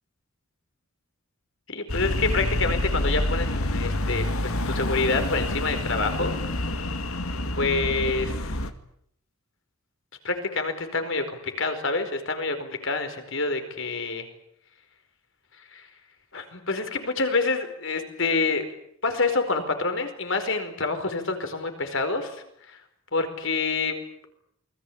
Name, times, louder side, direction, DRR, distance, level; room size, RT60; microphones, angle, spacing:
voice 1, 1.7-6.3 7.6-8.5 10.2-14.3 15.7-15.9 16.3-18.6 19.0-22.8 23.1-23.9, left 3 dB, 60° left, 7 dB, 4.8 m, -27 dB
sound 1, 1.9-8.7, left 1 dB, 80° left, 2.2 m, -27 dB
28.5 x 21.5 x 8.8 m, 0.72 s
head